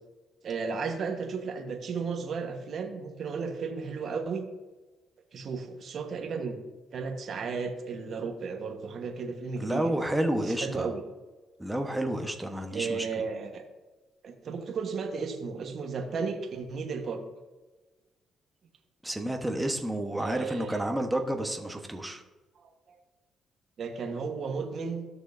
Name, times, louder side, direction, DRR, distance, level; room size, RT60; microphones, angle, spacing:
voice 1, 0.4-4.4 5.3-6.6 6.9-9.9 10.5-11.0 12.7-13.6 14.2-17.2 20.2-20.9 22.5-23.0 23.8-25.1, right 5 dB, 60° right, 4 dB, 1.2 m, -34 dB
voice 2, 9.6-10.9 11.6-13.1 19.0-22.2, right 1 dB, 5° right, 4 dB, 1.1 m, -30 dB
14.0 x 6.3 x 2.7 m, 1.2 s
cardioid pair, 90°, 0 cm